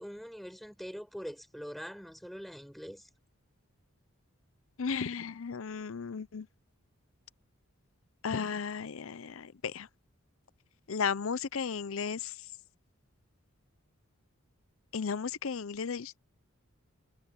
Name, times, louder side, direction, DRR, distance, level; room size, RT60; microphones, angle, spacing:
voice 1, 0.0-3.1, equal, ahead, 5.5 m, -43 dB
voice 2, 4.8-6.5 8.2-9.9 10.9-12.3 14.9-16.2, left 6 dB, 70° left, 0.6 m, -34 dB
head